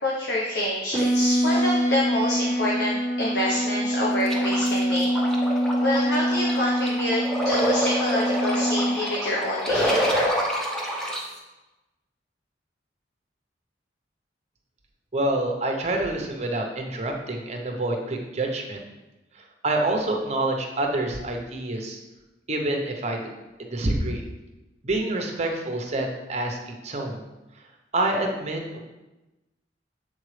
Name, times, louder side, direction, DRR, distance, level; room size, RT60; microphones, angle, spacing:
voice 1, 0.0-5.1 5.8-10.2, left 1 dB, 70° left, -4 dB, 0.9 m, -27 dB
sound 1, 0.9-8.9, equal, 20° left, 1.5 m, -25 dB
sound 2, 4.3-11.2, equal, 5° left, 0.8 m, -27 dB
voice 2, 15.1-18.8 19.3-22.0 22.5-23.3 23.6-24.2 24.8-27.2 27.9-28.8, right 2 dB, 40° right, 2 dB, 0.8 m, -27 dB
7.3 x 4.0 x 3.2 m, 1.0 s
head